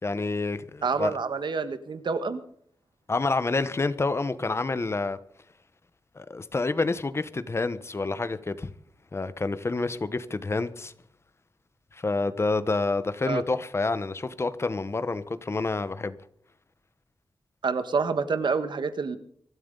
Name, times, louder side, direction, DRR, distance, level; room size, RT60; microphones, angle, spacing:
voice 1, 0.0-1.2 3.1-5.2 6.2-8.7 9.1-10.9 11.9-16.2, left 3 dB, 30° left, 1.1 m, -28 dB
voice 2, 0.8-2.4 13.3-13.4 17.6-19.2, right 5 dB, 65° right, 1.6 m, -27 dB
24.5 x 13.0 x 4.0 m
wide cardioid pair, 120°, 8 cm